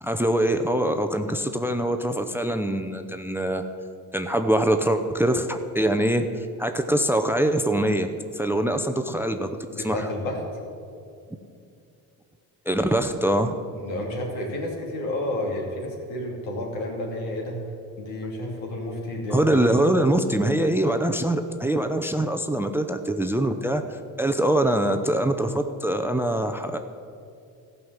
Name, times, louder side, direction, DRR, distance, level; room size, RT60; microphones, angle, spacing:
voice 1, 0.0-3.6 4.1-8.1 8.3-10.1 12.7-13.5 19.3-26.8, right 1 dB, 5° right, 7 dB, 0.6 m, -23 dB
voice 2, 9.7-10.4 13.8-17.6 18.0-19.8, left 1 dB, 80° left, 0 dB, 2.8 m, -31 dB
14.0 x 5.5 x 7.4 m, 2.5 s
supercardioid pair, 70°, 45 cm